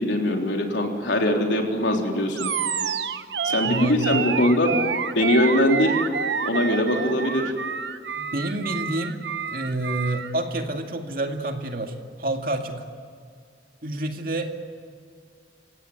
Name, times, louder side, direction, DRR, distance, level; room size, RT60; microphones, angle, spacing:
voice 1, 0.0-2.5 3.4-4.8 5.2-6.0 6.4-7.5, left 1 dB, 80° left, 1 dB, 3.8 m, -22 dB
Animal, 2.4-10.3, right 6 dB, 70° right, 1.0 m, -28 dB
voice 2, 3.6-4.2 8.2-9.2 9.5-12.8 13.8-14.5, right 1 dB, 50° right, 4 dB, 2.3 m, -28 dB
27.5 x 17.0 x 9.4 m, 2.1 s
head